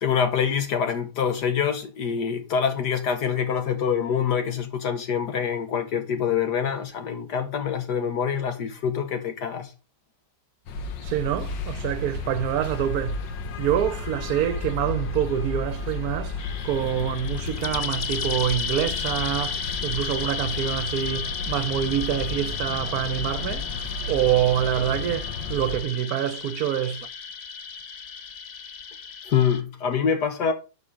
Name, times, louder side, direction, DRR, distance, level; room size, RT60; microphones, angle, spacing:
voice 1, 0.0-9.7 29.3-30.5, left 7 dB, 70° left, 1.7 m, -25 dB
sound 1, 10.7-25.8, left 3 dB, 85° left, 1.7 m, -33 dB
voice 2, 11.1-13.2 13.6-16.4 16.6-19.6 19.8-23.7 24.1-27.1, right 10 dB, 65° right, 1.1 m, -26 dB
sound 2, 16.4-29.6, left 6 dB, 50° left, 0.8 m, -33 dB
11.5 x 4.6 x 5.1 m
omnidirectional pair, 1.9 m